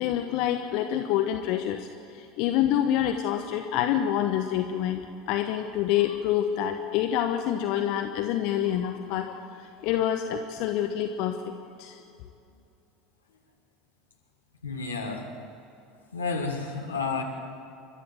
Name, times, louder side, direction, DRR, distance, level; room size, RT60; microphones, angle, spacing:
voice 1, 0.0-5.0 5.3-12.0, left 10 dB, 50° left, 5 dB, 1.1 m, -27 dB
voice 2, 14.6-15.3 16.1-17.2, left 4 dB, 80° left, 0 dB, 2.7 m, -31 dB
30.0 x 12.5 x 7.7 m, 2.6 s
figure-of-eight pair, 70°, 0 cm